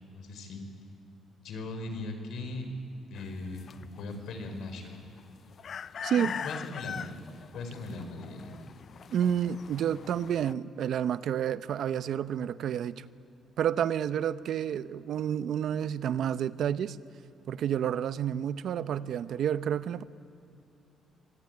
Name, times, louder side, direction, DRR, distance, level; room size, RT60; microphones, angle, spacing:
voice 1, 0.1-0.6 1.4-2.7 3.1-5.0 6.1-7.1 7.5-8.5, left 3 dB, 75° left, 6 dB, 4.5 m, -39 dB
sound 1, 3.2-10.5, left 7 dB, 55° left, 0.5 m, -42 dB
voice 2, 9.1-13.1 13.6-17.0 17.5-20.0, right 9 dB, 70° right, 14 dB, 0.7 m, -30 dB
25.0 x 18.5 x 9.7 m, 2.9 s
cardioid pair, 90°, 0 cm